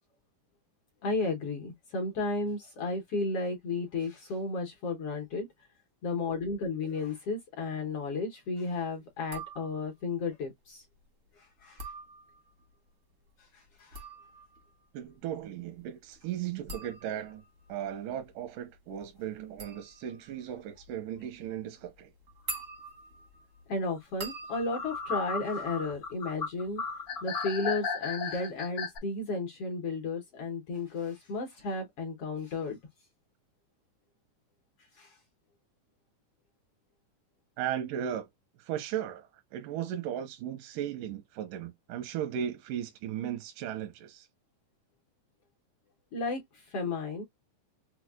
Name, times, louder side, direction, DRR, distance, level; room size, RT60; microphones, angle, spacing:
voice 1, 1.0-5.5 6.0-10.8 11.4-11.9 13.5-14.0 22.5-22.6 23.7-26.8 27.2-32.8 35.0-35.2 46.1-47.2, left 3 dB, 70° left, 1.5 m, -33 dB
sound 1, 9.2-10.1 11.6-12.7 13.7-26.4 26.7-27.2, right 2 dB, 70° right, 0.7 m, -46 dB
voice 2, 14.9-17.4 17.7-22.1 37.6-38.3 38.6-44.3, right 10 dB, 85° right, 2.2 m, -36 dB
sound 2, 24.5-29.0, left 4 dB, 85° left, 0.7 m, -35 dB
6.2 x 2.2 x 2.3 m
omnidirectional pair, 3.8 m